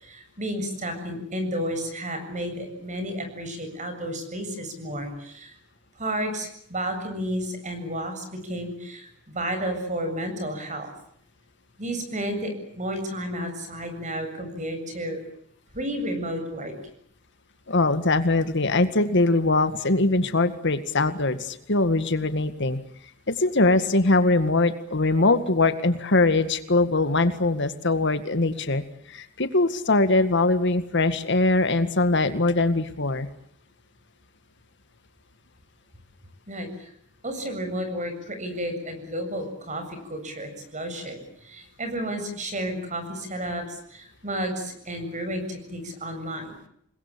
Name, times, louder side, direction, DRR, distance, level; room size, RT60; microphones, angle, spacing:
voice 1, 0.0-5.5 6.0-10.9 11.8-15.2 15.7-16.7 36.5-36.9 37.2-46.6, equal, 35° right, 7 dB, 7.5 m, -32 dB
voice 2, 17.7-22.8 23.3-28.8 29.1-33.3, left 2 dB, 60° left, 10 dB, 1.9 m, -22 dB
28.5 x 21.5 x 8.5 m, 0.70 s
head